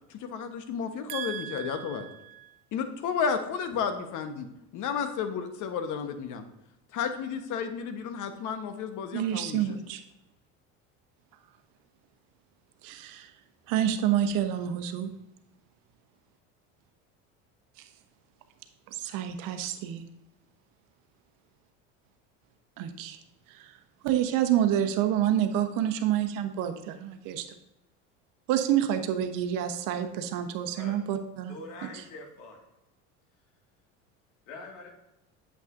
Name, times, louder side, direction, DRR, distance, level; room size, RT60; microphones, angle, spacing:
voice 1, 0.2-2.1 2.7-4.5 4.7-6.4 6.9-9.6, left 6 dB, 55° left, 7 dB, 1.2 m, -32 dB
voice 2, 1.1-2.5 9.1-10.0 12.8-13.3 13.7-15.1 19.0-20.0 22.8-23.2 23.5-23.7 24.0-27.4 28.5-31.6, right 10 dB, 65° right, 8 dB, 1.0 m, -28 dB
voice 3, 31.5-32.6 34.5-34.9, left 3 dB, 80° left, 1 dB, 2.1 m, -44 dB
8.3 x 7.4 x 2.6 m, 0.90 s
supercardioid pair, 85°, 37 cm